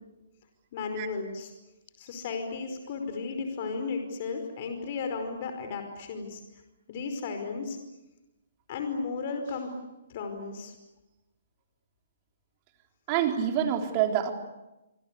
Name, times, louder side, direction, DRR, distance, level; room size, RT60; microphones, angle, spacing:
voice 1, 0.7-1.5 2.0-6.4 6.9-7.8 8.7-9.7 10.1-10.7, left 4 dB, 45° left, 6 dB, 5.0 m, -34 dB
voice 2, 13.1-14.3, right 9 dB, 30° right, 5 dB, 3.9 m, -26 dB
26.5 x 25.5 x 8.4 m, 0.97 s
figure-of-eight pair, 130°, 0 cm